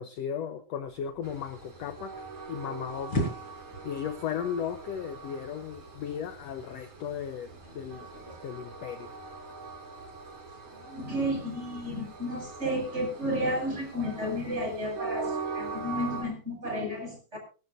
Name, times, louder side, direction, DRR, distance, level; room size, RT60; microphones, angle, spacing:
voice 1, 0.0-2.1 2.5-3.3 3.8-7.5 7.7-8.1 8.4-9.1, left 8 dB, 70° left, 9 dB, 1.6 m, -35 dB
sound 1, 0.8-8.4, equal, 40° left, 5.9 m, -40 dB
Train, 1.2-16.2, right 4 dB, 60° right, 6.4 m, -42 dB
voice 2, 10.8-17.4, equal, 20° right, 1 dB, 6.8 m, -32 dB
24.0 x 12.5 x 2.6 m, 0.35 s
omnidirectional pair, 3.9 m